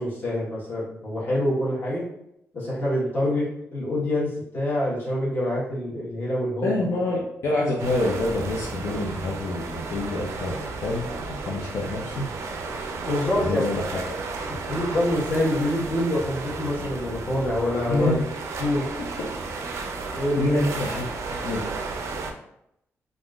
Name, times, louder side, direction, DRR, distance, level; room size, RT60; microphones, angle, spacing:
voice 1, 0.0-2.0 2.5-6.7 13.1-13.6 14.7-18.1 18.6-18.9 20.1-20.6, left 1 dB, 35° left, -7 dB, 1.2 m, -26 dB
voice 2, 6.6-12.3 13.4-14.0 17.9-18.2 19.2-19.3 19.6-19.9 20.4-21.6, left 2 dB, 65° left, -3 dB, 0.5 m, -27 dB
sound 1, 7.8-22.3, right 4 dB, 70° right, 0.4 m, -33 dB
3.5 x 2.5 x 2.3 m, 0.78 s
wide cardioid pair, 150°, 5 cm